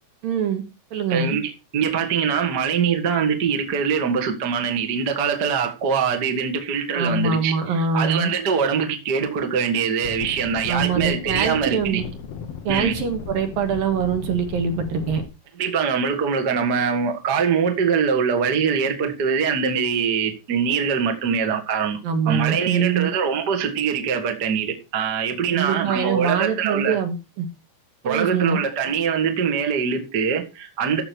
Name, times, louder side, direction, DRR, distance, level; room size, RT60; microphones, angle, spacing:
voice 1, 0.2-0.6 0.9-1.3 6.9-8.3 10.7-12.0 12.6-15.2 22.0-23.1 25.5-27.5 28.0-28.6, right 6 dB, 60° right, 3.4 m, -23 dB
voice 2, 1.1-12.0 12.7-13.0 15.6-22.0 22.2-27.0 28.0-31.0, right 6 dB, 40° right, 1.5 m, -23 dB
sound 1, 10.0-15.3, left 6 dB, 80° left, 1.4 m, -35 dB
14.5 x 6.6 x 4.6 m
omnidirectional pair, 4.9 m